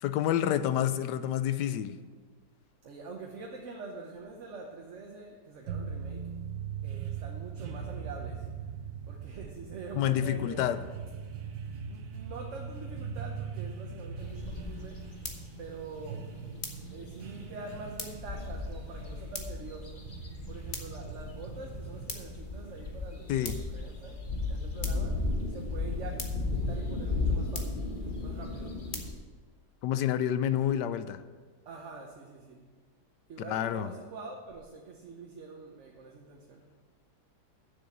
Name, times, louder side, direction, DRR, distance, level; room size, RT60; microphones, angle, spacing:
voice 1, 0.0-2.0 9.9-10.8 23.3-23.5 29.8-31.2 33.5-33.9, left 11 dB, 85° left, 12 dB, 1.2 m, -28 dB
voice 2, 2.8-6.3 6.8-8.5 9.1-10.9 11.9-15.0 15.6-16.3 16.9-20.0 20.4-24.2 24.5-27.8 28.2-28.8 31.6-32.6 33.3-36.6, right 3 dB, 50° right, 1 dB, 1.2 m, -45 dB
sound 1, 5.7-22.5, right 6 dB, 75° right, 1.4 m, -41 dB
sound 2, 14.2-29.1, left 3 dB, 35° left, 1.2 m, -36 dB
7.6 x 6.7 x 8.1 m, 1.5 s
omnidirectional pair, 1.8 m